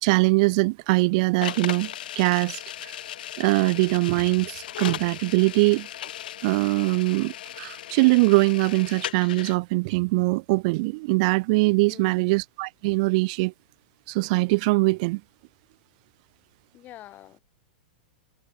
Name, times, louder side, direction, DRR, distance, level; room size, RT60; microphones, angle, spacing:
voice 1, 0.0-3.0 3.4-5.9 6.4-13.5 14.1-15.2, right 26 dB, 50° right, 0.4 m, -22 dB
sound 1, 1.4-9.6, left 12 dB, 70° left, 0.4 m, -37 dB
voice 2, 11.8-12.4 16.7-17.4, left 14 dB, 35° left, 1.6 m, -46 dB
hypercardioid pair, 110°, 5 cm